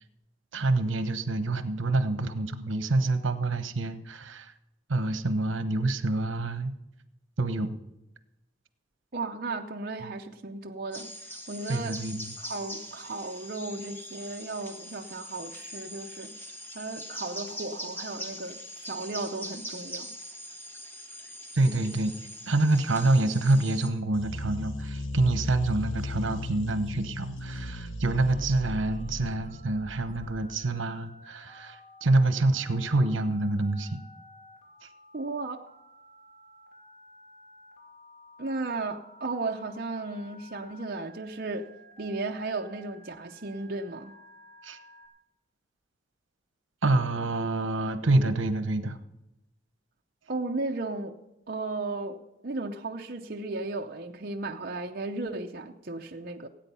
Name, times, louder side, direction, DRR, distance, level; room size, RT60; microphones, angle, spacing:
voice 1, 0.5-4.5 4.9-6.7 7.4-7.8 11.7-12.3 21.5-22.1 22.5-34.0 44.6-44.8 46.8-49.0, right 2 dB, 75° right, 10 dB, 1.0 m, -27 dB
voice 2, 9.1-12.0 12.4-16.3 16.7-20.1 35.1-35.7 38.4-41.7 42.0-44.1 50.3-51.1 51.5-56.5, right 3 dB, 45° right, 2 dB, 0.7 m, -35 dB
sound 1, 10.9-23.9, equal, 10° left, 1.3 m, -42 dB
sound 2, 24.1-30.7, left 2 dB, 75° left, 1.1 m, -36 dB
Telephone, 28.3-45.1, equal, 40° left, 3.0 m, -53 dB
17.5 x 9.0 x 5.5 m, 0.92 s
head